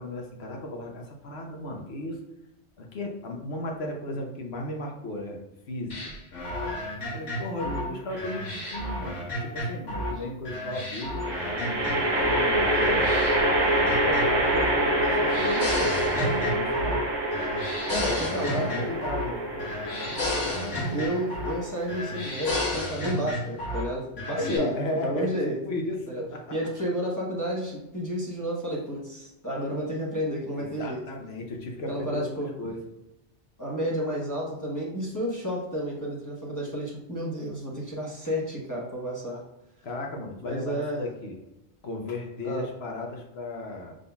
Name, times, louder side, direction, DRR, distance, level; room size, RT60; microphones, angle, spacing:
voice 1, 0.0-2.2 2.8-5.4 5.7-6.1 7.1-13.1 13.8-17.0 17.9-20.8 24.4-26.5 30.5-32.8 39.8-41.4 41.8-44.0, left 1 dB, 65° left, 1 dB, 1.0 m, -35 dB
sound 1, 5.9-10.2 10.5-12.4 12.7-14.8 15.0-17.1 17.3-19.3 19.6-21.6 21.9-23.9 24.2-24.6, left 1 dB, 80° left, 1.5 m, -32 dB
voice 2, 7.6-7.9 17.9-18.7 20.9-24.7 25.0-25.6 26.1-26.2 26.5-31.0 31.9-32.5 33.6-39.4 40.4-41.0 42.4-42.7, equal, 15° left, -5 dB, 0.9 m, -31 dB
sound 2, 8.1-8.7 11.2-22.6, right 1 dB, 30° right, 0.6 m, -26 dB
5.4 x 3.8 x 2.3 m, 0.93 s
omnidirectional pair, 1.2 m